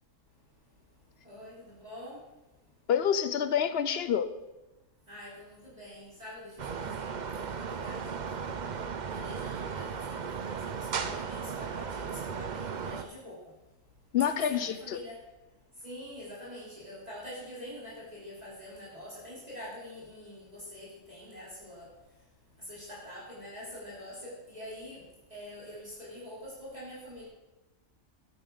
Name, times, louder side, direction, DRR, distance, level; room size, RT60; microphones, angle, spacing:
voice 1, 1.2-2.2 5.1-7.1 7.4-8.0 8.3-8.6 9.1-13.4 14.5-15.2 15.8-21.9 22.7-25.0 25.3-27.3, left 1 dB, 30° right, -7 dB, 3.6 m, -45 dB
voice 2, 2.9-4.3 14.1-15.0, left 8 dB, 60° left, 11 dB, 0.8 m, -27 dB
sound 1, 6.6-13.0, right 6 dB, 45° right, 0.6 m, -36 dB
13.0 x 10.0 x 3.9 m, 1.0 s
omnidirectional pair, 1.4 m